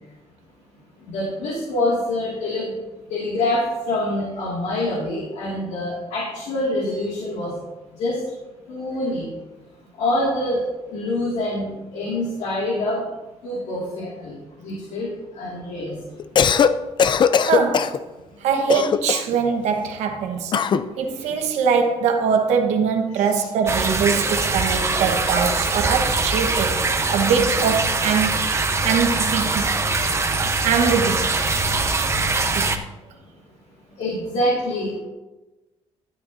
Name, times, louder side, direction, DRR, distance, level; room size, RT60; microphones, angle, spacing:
voice 1, 1.1-2.6 3.1-7.5 8.0-8.2 8.7-9.3 10.0-10.6 10.9-13.0 13.4-14.3 14.6-15.1 15.4-15.9 23.1-23.4 34.0-35.0, left 1 dB, 80° left, 2.2 m, -25 dB
Cough, 16.2-16.7 17.0-18.0 18.7-19.4 20.5-20.9, left 7 dB, 45° left, 0.5 m, -18 dB
voice 2, 17.4-18.0 18.4-20.6 21.0-28.4 28.8-29.7 30.6-31.3 32.5-32.7, right 6 dB, 85° right, 1.2 m, -22 dB
sound 1, 23.7-32.8, right 3 dB, 25° right, 0.9 m, -22 dB
12.0 x 8.9 x 2.7 m
cardioid pair, 105°, 11 cm